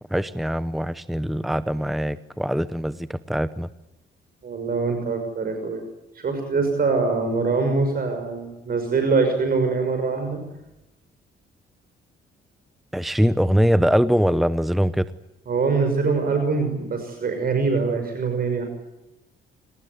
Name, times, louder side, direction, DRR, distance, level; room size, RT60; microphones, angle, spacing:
voice 1, 0.1-3.7 12.9-15.1, equal, ahead, 14 dB, 0.9 m, -22 dB
voice 2, 4.4-5.8 6.1-10.4 15.5-18.7, right 4 dB, 50° right, 5 dB, 6.1 m, -23 dB
27.5 x 19.5 x 9.6 m, 0.93 s
cardioid pair, 90°, 20 cm